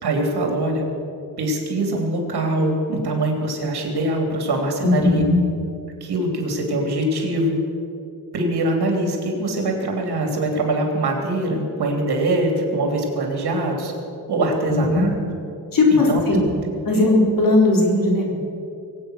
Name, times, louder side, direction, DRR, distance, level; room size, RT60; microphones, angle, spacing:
voice 1, 0.0-0.8 1.4-5.2 6.0-7.6 8.3-13.9 14.3-15.1 15.9-16.2 16.9-17.1, right 1 dB, 85° right, 2 dB, 3.2 m, -23 dB
voice 2, 4.8-5.4 14.7-15.1 15.7-16.5 16.8-18.3, left 2 dB, 60° left, -2 dB, 3.9 m, -18 dB
22.5 x 8.7 x 6.4 m, 2.7 s
wide cardioid pair, 135°, 38 cm